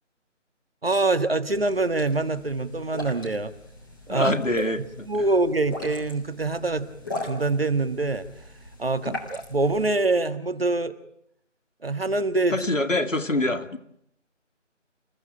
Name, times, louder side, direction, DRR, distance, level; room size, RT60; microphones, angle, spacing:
voice 1, 0.8-3.5 4.1-4.3 5.1-6.9 7.2-8.3 8.8-10.9 11.8-12.6, right 2 dB, 50° right, 11 dB, 1.7 m, -24 dB
sound 1, 1.4-9.9, left 1 dB, 15° left, 3.0 m, -40 dB
voice 2, 4.1-5.1 9.1-9.2 12.5-13.8, left 1 dB, 80° left, 8 dB, 2.1 m, -25 dB
28.5 x 15.0 x 8.8 m, 0.76 s
figure-of-eight pair, 165°, 37 cm